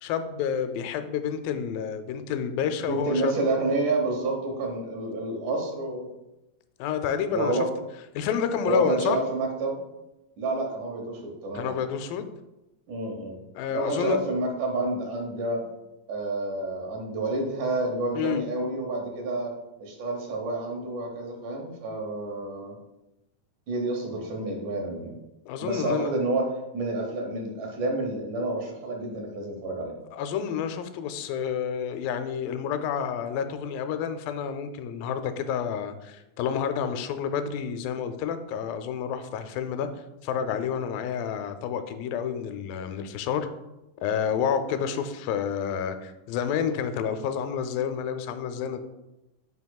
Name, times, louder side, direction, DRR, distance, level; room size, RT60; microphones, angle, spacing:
voice 1, 0.0-3.4 6.8-7.7 8.1-9.2 11.5-12.3 13.6-14.2 18.2-18.4 25.5-26.1 30.1-39.9 40.2-43.5 44.0-48.8, left 7 dB, 85° left, 9 dB, 2.3 m, -29 dB
voice 2, 2.9-6.1 7.3-7.7 8.7-9.8 10.4-11.7 12.9-13.4 13.7-15.7 16.1-19.5 19.8-22.8 23.7-25.2 25.6-26.5 26.7-29.9, right 2 dB, 70° right, 1 dB, 2.4 m, -29 dB
9.6 x 5.7 x 2.3 m, 0.97 s
omnidirectional pair, 4.0 m